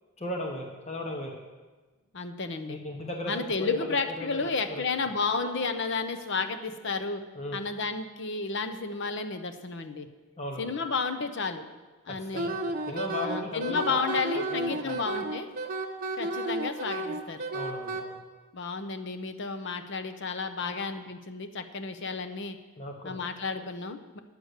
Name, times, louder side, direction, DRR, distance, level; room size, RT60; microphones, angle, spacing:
voice 1, 0.2-1.4 2.7-5.5 6.7-6.8 7.3-7.6 10.4-10.9 12.3-12.5 12.9-14.1 14.7-15.0 16.9-17.0 17.5-18.2 20.6-20.8 22.1-22.2 22.8-23.1 23.6-23.7, left 1 dB, 30° left, 1 dB, 1.0 m, -36 dB
voice 2, 2.1-2.8 3.3-7.2 7.5-10.1 10.6-11.6 12.1-12.5 13.2-15.5 16.2-17.4 18.5-22.6 23.0-24.2, left 4 dB, 55° left, 9 dB, 0.7 m, -32 dB
Wind instrument woodwind instrument, 12.3-18.0, right 2 dB, 40° right, 0.9 m, -32 dB
9.6 x 6.5 x 8.0 m, 1.3 s
head